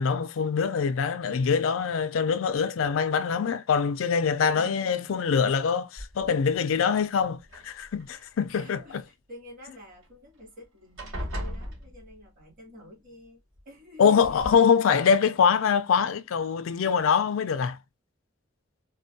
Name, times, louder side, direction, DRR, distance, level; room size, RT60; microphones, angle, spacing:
voice 1, 0.0-8.8 14.0-17.8, left 6 dB, 80° left, 0.4 m, -24 dB
voice 2, 4.5-4.9 8.2-13.4 13.7-14.4, left 1 dB, 45° right, 2.2 m, -49 dB
sound 1, 6.0-6.5 7.4-8.2 10.0-10.1 10.4-10.6 11.0-12.4 13.6-13.7 14.2-14.6, equal, 75° right, 2.1 m, -37 dB
4.3 x 2.2 x 2.6 m
head